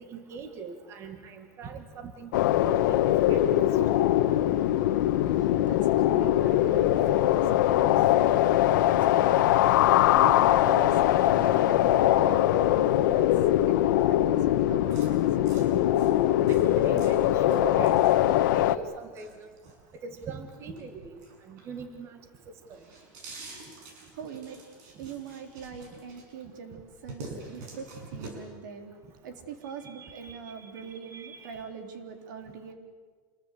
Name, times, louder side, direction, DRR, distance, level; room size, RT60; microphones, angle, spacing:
voice 1, 0.1-2.3 2.6-2.9 3.3-3.6 10.3-10.4 16.5-18.0 18.4-19.5 19.9-21.2 21.5-22.2 22.5-22.8 27.3-27.4 29.8-31.6, right 5 dB, 25° right, 8 dB, 1.9 m, -41 dB
sound 1, 2.3-18.8, left 13 dB, 85° left, 1.2 m, -22 dB
voice 2, 5.2-8.5 8.8-9.6 10.1-15.5 23.8-23.9 24.1-24.6 25.0-28.9 29.2-32.7, right 7 dB, 90° right, 6 dB, 3.6 m, -43 dB
sound 2, 14.9-22.0 22.4-26.4 26.8-28.3, right 3 dB, 70° right, 6.7 m, -47 dB
27.5 x 21.5 x 8.3 m, 1.5 s
supercardioid pair, 170°, 10 cm